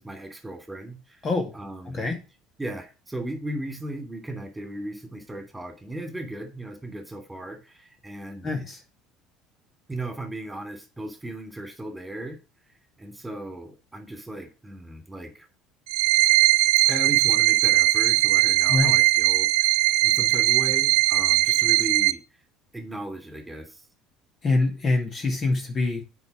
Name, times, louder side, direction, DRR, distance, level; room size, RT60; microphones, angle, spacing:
voice 1, 0.0-1.2 1.5-2.1 2.6-8.5 9.9-12.4 13.0-15.5 16.9-22.2 22.7-23.8, right 1 dB, 10° right, 5 dB, 3.1 m, -36 dB
voice 2, 1.2-1.5 1.9-2.2 8.4-8.8 18.7-19.0 24.4-26.0, left 3 dB, 40° left, 3 dB, 2.4 m, -25 dB
sound 1, 15.9-22.1, right 20 dB, 75° right, 0.4 m, -20 dB
7.8 x 5.5 x 6.2 m, 0.30 s
hypercardioid pair, 70°, 0 cm